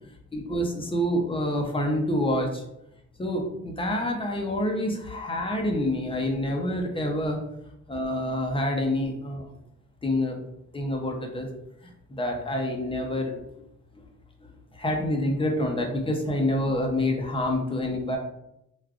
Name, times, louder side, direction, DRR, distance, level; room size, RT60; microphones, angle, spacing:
voice 1, 0.3-2.6 3.2-7.4 7.9-9.5 10.0-10.4 10.7-11.5 12.1-13.3 14.7-18.2, left 1 dB, 20° left, 2 dB, 0.6 m, -27 dB
3.4 x 2.5 x 2.4 m, 0.82 s
cardioid pair, 90°, 30 cm